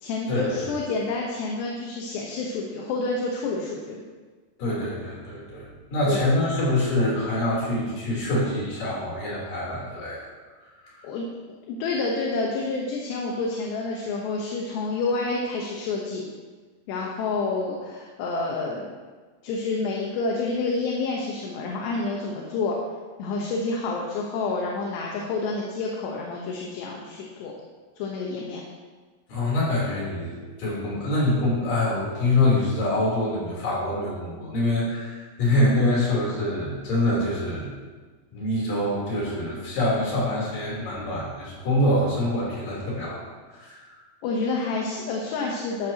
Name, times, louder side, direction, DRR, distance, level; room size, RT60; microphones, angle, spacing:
voice 1, 0.0-4.0 6.1-6.2 11.0-11.3 11.7-16.3 16.9-18.9 19.4-22.8 23.2-27.5 28.0-28.6 44.2-45.9, left 3 dB, 75° left, -1 dB, 3.2 m, -28 dB
voice 2, 4.6-10.3 29.3-37.7 38.3-43.2 43.5-44.0, left 1 dB, 50° left, -5 dB, 5.2 m, -25 dB
14.0 x 12.0 x 3.0 m, 1.4 s
omnidirectional pair, 5.2 m